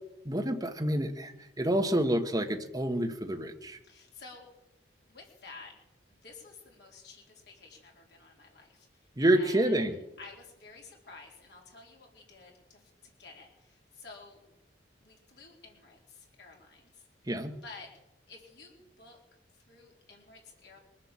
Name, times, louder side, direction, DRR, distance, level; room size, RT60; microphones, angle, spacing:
voice 1, 0.2-3.8 9.2-9.9 17.3-17.5, right 1 dB, 20° right, 4 dB, 1.1 m, -28 dB
voice 2, 3.8-4.5 5.0-5.7 6.1-8.9 9.2-9.9 10.2-14.4 15.0-17.0 17.6-17.9 18.3-19.2 19.7-20.8, left 3 dB, 65° left, -1 dB, 3.9 m, -51 dB
22.5 x 7.6 x 7.3 m, 0.91 s
head